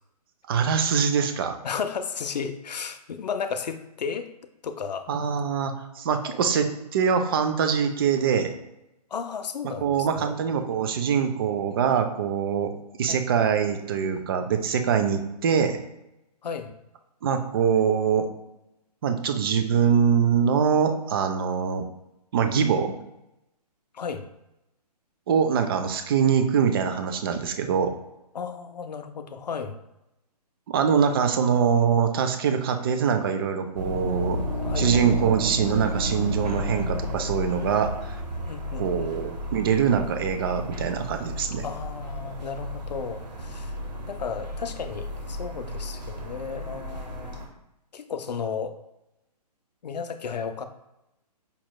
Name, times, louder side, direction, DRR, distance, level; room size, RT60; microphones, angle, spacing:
voice 1, 0.5-1.5 5.1-8.5 9.8-12.7 13.0-15.8 17.2-18.3 19.0-21.8 22.3-22.9 25.3-27.9 30.7-34.4 34.8-37.9 38.8-41.6, right 7 dB, 35° right, 7 dB, 0.4 m, -23 dB
voice 2, 1.6-4.3 4.6-5.1 6.3-6.4 9.1-10.3 10.7-11.1 13.1-13.2 16.4-16.7 23.9-24.2 28.3-29.8 34.6-34.9 38.5-39.1 41.6-43.7 44.1-47.4 47.9-48.8 49.8-50.6, left 6 dB, 85° left, 9 dB, 0.4 m, -34 dB
sound 1, 33.8-47.5, equal, 80° right, 0.8 m, -32 dB
5.2 x 2.8 x 2.2 m, 0.90 s
hypercardioid pair, 140°, 21 cm